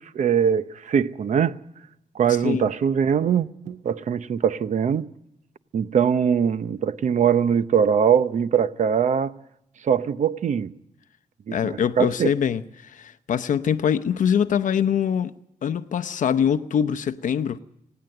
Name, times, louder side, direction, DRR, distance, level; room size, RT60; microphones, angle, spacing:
voice 1, 0.1-1.6 2.1-5.1 5.7-9.3 9.8-10.7 11.5-12.3, right 7 dB, 60° right, 0.8 m, -22 dB
voice 2, 11.5-15.3 15.6-17.6, left 8 dB, 65° left, 0.7 m, -23 dB
20.0 x 17.0 x 7.8 m
wide cardioid pair, 140°, 14 cm